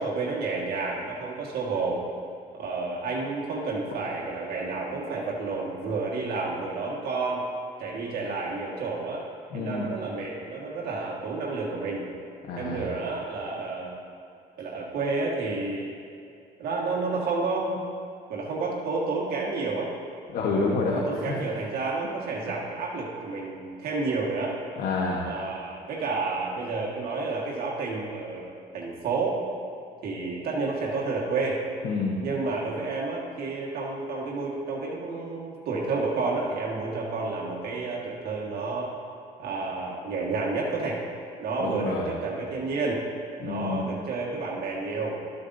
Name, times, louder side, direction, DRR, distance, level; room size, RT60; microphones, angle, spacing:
voice 1, 0.0-2.0 2.5-7.4 7.8-9.2 9.5-12.1 12.6-13.9 14.6-15.9 16.6-17.8 18.3-19.9 20.9-24.6 25.2-29.4 30.0-31.6 32.2-38.9 39.4-41.0 41.4-43.0 43.4-45.2, right 3 dB, 65° right, -4 dB, 1.7 m, -30 dB
voice 2, 9.5-9.9 12.4-12.8 20.3-21.4 24.8-25.3 31.8-32.2 41.6-42.1 43.4-43.9, left 3 dB, 60° left, -2 dB, 1.2 m, -28 dB
12.5 x 8.2 x 2.7 m, 2.5 s
cardioid pair, 110°, 17 cm